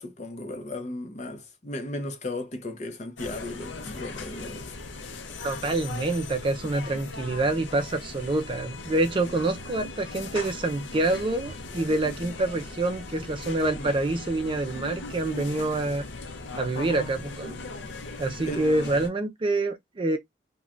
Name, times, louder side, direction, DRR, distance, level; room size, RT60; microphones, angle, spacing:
voice 1, 0.0-4.7 13.7-13.9 18.4-18.6, left 1 dB, 40° left, 0.7 m, -35 dB
sound 1, 3.2-19.1, left 3 dB, 75° left, 0.6 m, -39 dB
voice 2, 5.4-16.0 16.6-17.5 18.2-20.2, right 2 dB, 30° right, 0.4 m, -27 dB
3.1 x 2.2 x 2.4 m
head